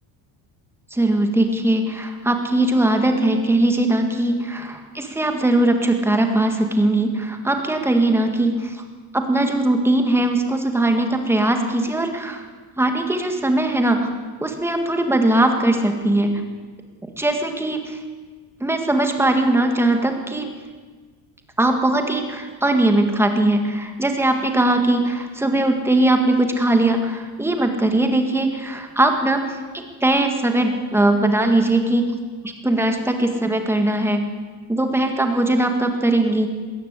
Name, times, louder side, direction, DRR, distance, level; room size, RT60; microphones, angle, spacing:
voice 1, 0.9-8.8 9.1-12.4 12.8-14.1 14.4-16.4 17.2-18.0 18.6-20.5 21.6-32.1 32.4-34.2 34.7-36.5, right 1 dB, 5° right, 5 dB, 1.7 m, -20 dB
20.0 x 18.0 x 8.2 m, 1.5 s
cardioid pair, 175°, 48 cm